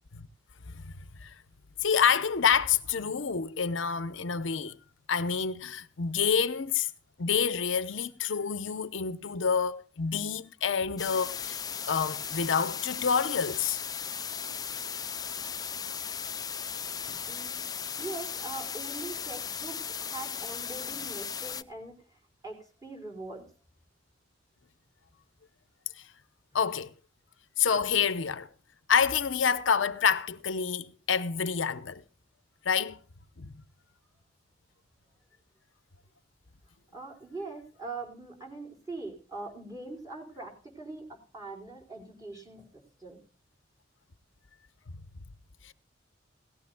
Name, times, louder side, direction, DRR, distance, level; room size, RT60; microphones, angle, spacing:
voice 1, 1.8-4.8 5.1-6.9 7.2-11.6 11.8-13.8 17.1-17.2 26.0-26.1 26.5-26.9 27.6-28.5 28.9-32.0 32.6-33.0 33.4-33.5 45.6-45.7, left 6 dB, 80° left, 0.8 m, -28 dB
sound 1, 11.0-21.6, left 7 dB, 20° left, 0.5 m, -37 dB
voice 2, 17.3-17.6 18.0-21.9 22.4-23.5 36.9-43.2, right 3 dB, 20° right, 4.4 m, -42 dB
18.0 x 15.5 x 2.2 m
head